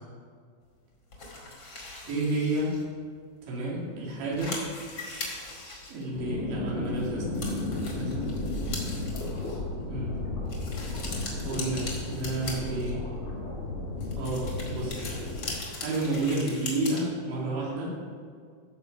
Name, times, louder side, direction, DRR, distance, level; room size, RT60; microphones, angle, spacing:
sound 1, 1.1-2.8 3.4-3.5 3.8-3.9 4.1-6.5 7.0-7.1 7.3-9.6 10.5-13.1 13.9-17.0, left 3 dB, 35° left, 2.2 m, -40 dB
voice 1, 2.1-2.8 3.4-4.6 5.9-7.4 7.9-8.2 9.9-10.1 11.4-13.1 14.1-15.0 15.7-18.0, right 2 dB, 75° right, -5 dB, 4.7 m, -31 dB
sound 2, 6.1-15.5, left 2 dB, 50° left, 0.7 m, -33 dB
15.5 x 6.9 x 5.1 m, 2.1 s
omnidirectional pair, 5.2 m